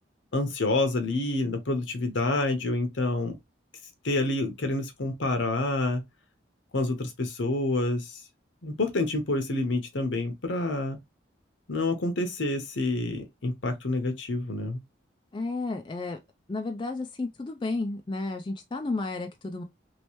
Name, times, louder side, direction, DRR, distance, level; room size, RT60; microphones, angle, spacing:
voice 1, 0.3-3.4 4.0-6.0 6.7-8.2 8.6-11.0 11.7-14.8, left 2 dB, 75° left, 0.9 m, -28 dB
voice 2, 15.3-16.2 16.5-19.6, left 3 dB, 25° left, 0.3 m, -32 dB
3.1 x 3.0 x 3.0 m
head